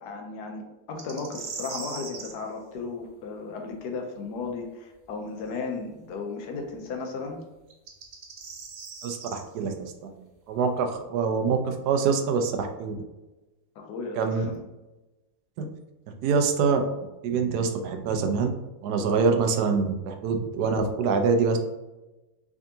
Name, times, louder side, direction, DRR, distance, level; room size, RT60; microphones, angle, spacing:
voice 1, 0.0-7.4 13.8-14.5, left 4 dB, 85° left, 2 dB, 1.2 m, -35 dB
sound 1, 1.0-2.4 5.5-5.6 7.7-9.4, right 5 dB, 65° right, 0.5 m, -39 dB
voice 2, 9.0-10.1 10.5-12.9 14.2-14.4 15.6-15.7 16.2-16.8 17.2-18.5 18.8-21.6, right 5 dB, 80° right, 5 dB, 1.1 m, -25 dB
3.5 x 3.5 x 2.7 m, 1.1 s
omnidirectional pair, 1.7 m